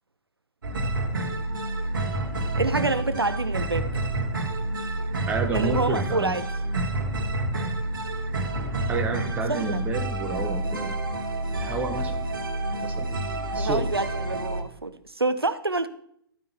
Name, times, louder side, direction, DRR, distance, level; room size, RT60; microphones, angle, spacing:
sound 1, 0.6-14.6, right 2 dB, 60° right, 1.7 m, -29 dB
voice 1, 2.6-3.9 5.5-6.4 9.5-9.8 13.6-15.9, right 3 dB, 80° right, 12 dB, 0.7 m, -27 dB
voice 2, 5.3-6.4 8.9-10.9 11.6-12.1 12.8-13.1 13.5-13.8, right 4 dB, 10° right, 4 dB, 1.0 m, -30 dB
12.0 x 9.0 x 2.9 m, 0.68 s
figure-of-eight pair, 120°, 13 cm